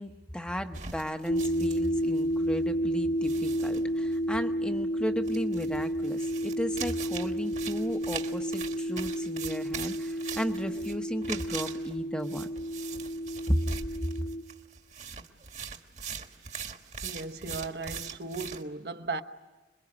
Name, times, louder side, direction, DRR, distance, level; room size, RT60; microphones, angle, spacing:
voice 1, 0.0-12.5 13.5-13.7 14.2-14.3, equal, 5° left, 0.9 m, -34 dB
sound 1, 0.7-2.3 2.6-2.7 3.2-4.2 5.3-18.6, right 6 dB, 45° right, 1.5 m, -41 dB
sound 2, 1.3-14.4, equal, 45° left, 1.3 m, -31 dB
voice 2, 17.0-19.2, right 3 dB, 65° right, 1.1 m, -36 dB
27.0 x 22.0 x 9.7 m
head